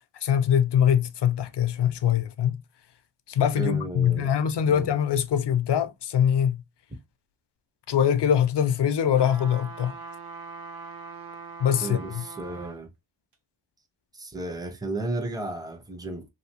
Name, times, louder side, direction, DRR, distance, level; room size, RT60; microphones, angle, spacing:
voice 1, 0.2-2.6 3.3-6.6 7.9-9.9 11.6-12.2, left 9 dB, 60° left, 0.5 m, -23 dB
voice 2, 3.5-4.3 4.7-4.9 11.8-12.9 14.1-16.3, right 2 dB, 10° right, 0.6 m, -33 dB
sound 1, 9.1-12.8 13.3-13.4, right 4 dB, 45° right, 0.9 m, -41 dB
2.8 x 2.7 x 2.8 m
cardioid pair, 85°, 49 cm